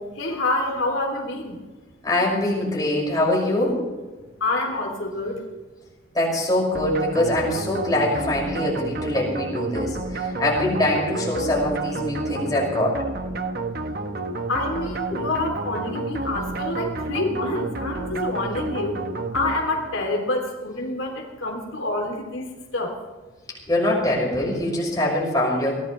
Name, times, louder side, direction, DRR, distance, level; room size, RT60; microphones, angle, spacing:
voice 1, 0.1-1.6 4.4-5.4 14.5-19.0 19.3-22.5 22.7-22.9, left 2 dB, 80° left, 1 dB, 3.3 m, -27 dB
voice 2, 2.0-3.8 6.1-13.0 15.1-15.2 23.7-25.8, left 1 dB, 20° left, -3 dB, 6.3 m, -23 dB
sound 1, 6.7-20.1, right 3 dB, 50° right, 1.1 m, -30 dB
23.0 x 17.5 x 3.3 m, 1.3 s
head